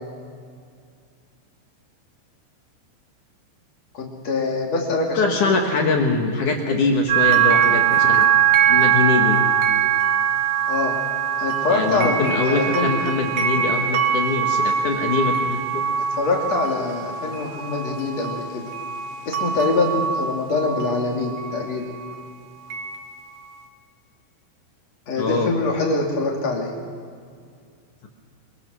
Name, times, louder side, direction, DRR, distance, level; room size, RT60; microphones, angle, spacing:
voice 1, 3.9-5.4 10.7-11.0 11.4-13.0 16.0-18.7 19.3-21.9 25.1-26.8, left 3 dB, 40° left, -1 dB, 3.0 m, -24 dB
voice 2, 5.1-8.3 8.7-9.4 11.7-15.8 25.2-25.5, left 4 dB, 65° left, 2 dB, 2.0 m, -23 dB
sound 1, 7.1-22.2 22.7-23.0, right 9 dB, 85° right, 1.6 m, -22 dB
25.0 x 22.5 x 6.2 m, 2.2 s
omnidirectional pair, 5.8 m